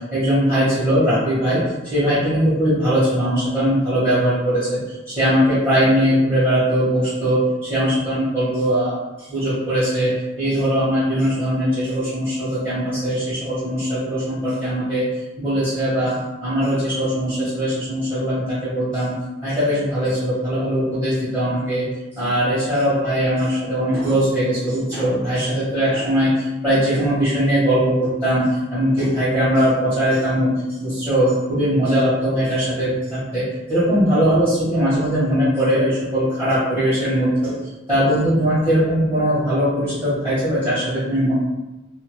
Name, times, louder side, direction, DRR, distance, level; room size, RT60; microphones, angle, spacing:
voice 1, 0.1-8.9 9.3-15.1 15.4-16.1 16.4-19.1 19.4-21.9 22.2-30.5 30.8-37.6 37.9-41.3, equal, 20° right, -14 dB, 1.1 m, -20 dB
2.6 x 2.3 x 3.0 m, 1.1 s
head